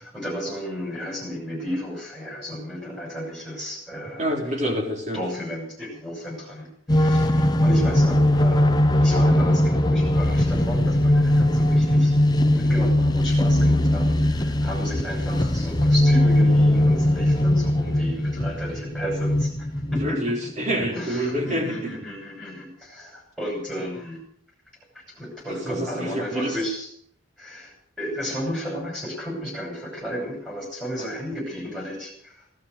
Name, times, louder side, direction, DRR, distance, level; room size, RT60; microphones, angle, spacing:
voice 1, 0.0-4.2 5.1-12.2 12.5-20.2 20.9-24.2 25.1-26.9 27.4-32.4, equal, 5° right, -1 dB, 6.3 m, -33 dB
voice 2, 4.2-5.2 19.9-21.9 25.5-26.5, equal, 35° right, 1 dB, 3.9 m, -27 dB
sound 1, 6.9-20.1, left 1 dB, 20° left, 0.9 m, -20 dB
16.5 x 12.5 x 6.6 m, 0.63 s
head